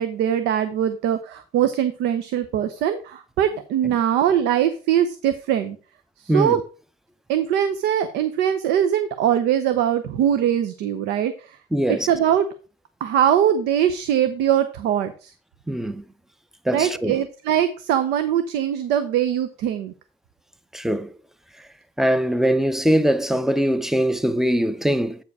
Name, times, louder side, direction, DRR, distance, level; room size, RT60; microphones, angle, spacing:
voice 1, 0.0-5.8 6.2-6.6 7.3-11.6 11.9-12.5 13.0-15.3 16.7-19.9, right 10 dB, 85° right, 0.7 m, -22 dB
voice 2, 11.7-12.1 15.7-16.0 16.7-17.1 20.7-21.1 22.0-25.2, equal, ahead, 0.5 m, -21 dB
8.4 x 4.7 x 4.7 m
cardioid pair, 110°, 17 cm